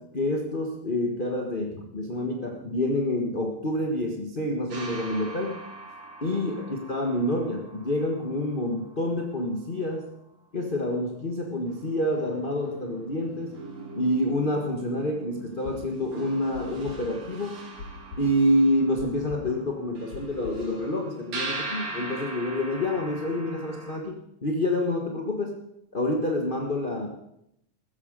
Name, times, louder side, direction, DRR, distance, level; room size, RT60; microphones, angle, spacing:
voice 1, 0.1-5.7 6.2-10.1 10.5-13.5 13.9-17.7 18.2-25.6 25.9-27.1, left 1 dB, 30° left, 1 dB, 0.8 m, -27 dB
sound 1, 4.7-9.6 11.1-11.2 11.5-24.0, right 3 dB, 60° right, 3.8 m, -41 dB
sound 2, 15.6-20.7, left 4 dB, 65° left, 2.7 m, -42 dB
15.0 x 14.0 x 5.4 m, 0.77 s
omnidirectional pair, 3.6 m